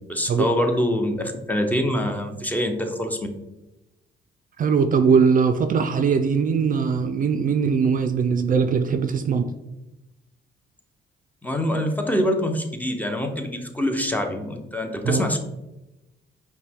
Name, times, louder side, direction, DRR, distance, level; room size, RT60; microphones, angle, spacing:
voice 1, 0.1-3.2 11.4-15.4, equal, 10° left, 4 dB, 0.6 m, -25 dB
voice 2, 4.6-9.5 15.0-15.2, right 6 dB, 45° right, 8 dB, 0.4 m, -20 dB
5.3 x 2.2 x 3.5 m, 0.96 s
cardioid pair, 90°, 20 cm